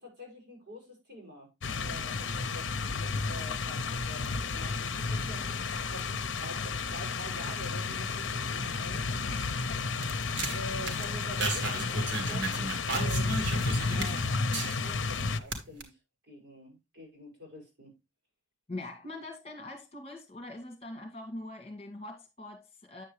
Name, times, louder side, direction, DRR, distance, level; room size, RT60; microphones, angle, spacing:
voice 1, 0.0-5.5 5.9-9.5 10.5-16.0 16.3-17.9, equal, 55° right, 6.0 m, -46 dB
sound 1, 1.6-15.4, left 4 dB, 75° left, 0.7 m, -32 dB
sound 2, 9.2-15.1 15.4-15.8, right 2 dB, 70° right, 1.9 m, -35 dB
voice 2, 18.7-23.0, left 2 dB, 30° left, 1.9 m, -42 dB
9.1 x 7.2 x 3.2 m
head